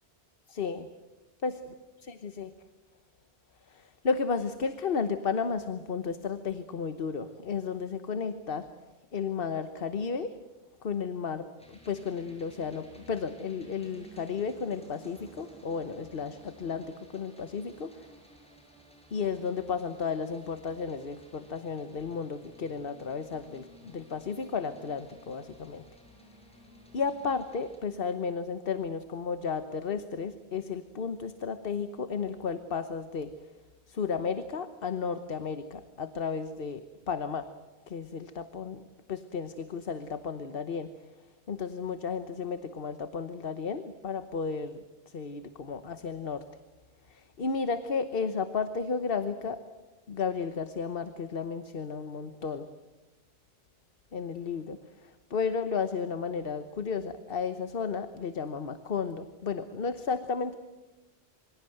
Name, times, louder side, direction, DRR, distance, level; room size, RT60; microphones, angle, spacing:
voice 1, 0.5-0.9 1.4-1.5 2.1-2.5 3.7-8.7 9.1-10.3 10.8-18.1 19.1-25.8 26.9-33.3 33.9-37.5 37.9-38.8 39.1-40.9 41.5-44.8 45.1-46.4 47.1-49.6 50.1-52.7 54.1-60.6, left 5 dB, 60° left, 10 dB, 1.3 m, -33 dB
sound 1, 11.6-27.8, right 1 dB, 5° left, 7.3 m, -54 dB
27.0 x 24.5 x 7.9 m, 1.1 s
omnidirectional pair, 1.1 m